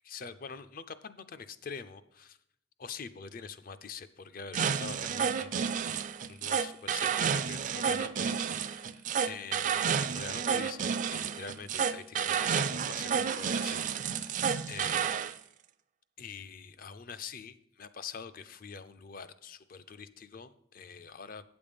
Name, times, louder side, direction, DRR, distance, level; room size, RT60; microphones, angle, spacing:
voice 1, 0.1-2.4 2.8-5.7 6.3-15.1 16.2-21.4, left 5 dB, 40° left, 13 dB, 0.4 m, -45 dB
sound 1, 4.5-15.3, right 7 dB, 40° right, 0.3 m, -31 dB
8.8 x 7.1 x 5.1 m, 0.76 s
head